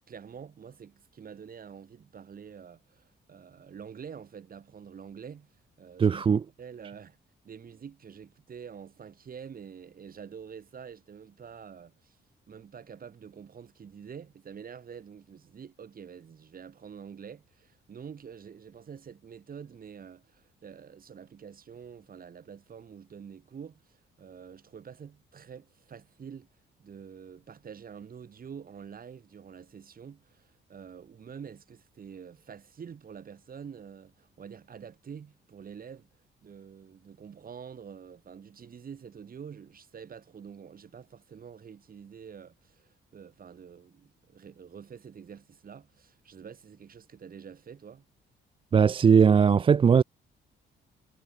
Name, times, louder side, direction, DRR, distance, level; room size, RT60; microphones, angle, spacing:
voice 1, 0.1-7.2 7.4-12.2 12.5-26.5 26.8-36.1 36.4-48.0, right 7 dB, 45° right, 3.1 m, -47 dB
voice 2, 6.0-6.4 48.7-50.0, right 6 dB, 25° right, 0.3 m, -19 dB
cardioid pair, 90°, 20 cm